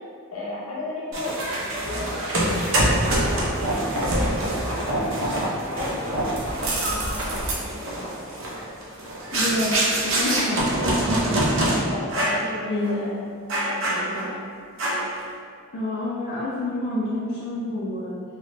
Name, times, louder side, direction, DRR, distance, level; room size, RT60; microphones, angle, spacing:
voice 1, 0.3-1.4 1.8-3.2 3.7-5.3 5.7-8.0 10.4-10.7 11.8-13.2 13.6-14.3, left 2 dB, 85° left, -7 dB, 0.9 m, -35 dB
sound 1, 1.1-11.8 12.1-12.5 12.8-13.0 13.5-14.4 14.8-15.2, right 1 dB, 65° right, 0.5 m, -25 dB
voice 2, 9.3-10.7 12.7-13.1 15.7-18.2, left 1 dB, 60° left, -8 dB, 0.4 m, -28 dB
2.8 x 2.0 x 3.1 m, 2.2 s
head